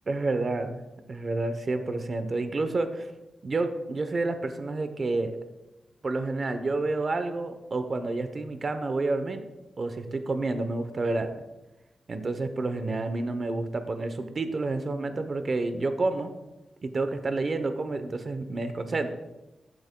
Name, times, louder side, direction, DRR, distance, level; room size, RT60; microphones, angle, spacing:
voice 1, 0.1-0.8 1.1-3.1 3.4-5.4 6.0-9.4 9.8-11.4 12.1-16.3 16.8-19.2, right 3 dB, 40° right, 9 dB, 0.7 m, -29 dB
15.0 x 8.8 x 2.2 m, 1.1 s
wide cardioid pair, 140°, 0 cm